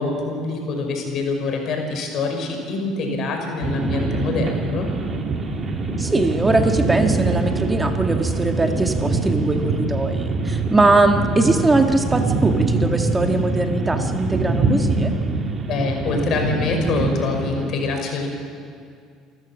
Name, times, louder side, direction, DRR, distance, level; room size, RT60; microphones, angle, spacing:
voice 1, 0.0-4.9 15.7-18.3, left 3 dB, 55° left, 3 dB, 5.2 m, -25 dB
sound 1, 3.6-17.7, right 3 dB, 40° right, 2.8 m, -23 dB
voice 2, 6.0-15.1, right 2 dB, 15° right, 5 dB, 1.8 m, -21 dB
28.5 x 14.0 x 7.4 m, 2.3 s
hypercardioid pair, 70°, 0 cm